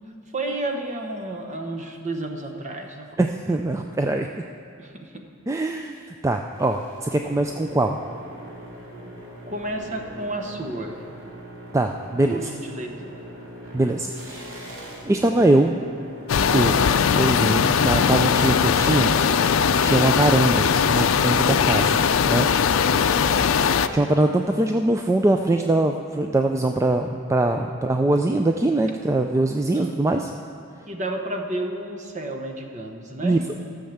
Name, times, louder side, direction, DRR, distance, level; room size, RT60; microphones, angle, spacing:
voice 1, 0.3-3.1 4.8-5.1 9.5-11.0 12.3-13.1 23.1-23.9 29.7-30.2 30.9-33.4, right 1 dB, 35° right, 4 dB, 1.1 m, -32 dB
voice 2, 3.2-4.3 5.5-6.0 6.2-8.0 11.7-12.4 13.7-14.8 15.0-15.8 16.5-16.8 17.1-22.5 23.9-30.3 33.2-33.6, right 2 dB, 15° right, 4 dB, 0.3 m, -22 dB
sound 1, 6.5-21.1, equal, 80° right, 2.2 m, -41 dB
sound 2, 16.3-23.9, left 6 dB, 80° left, 0.4 m, -20 dB
13.5 x 6.5 x 7.1 m, 2.3 s
head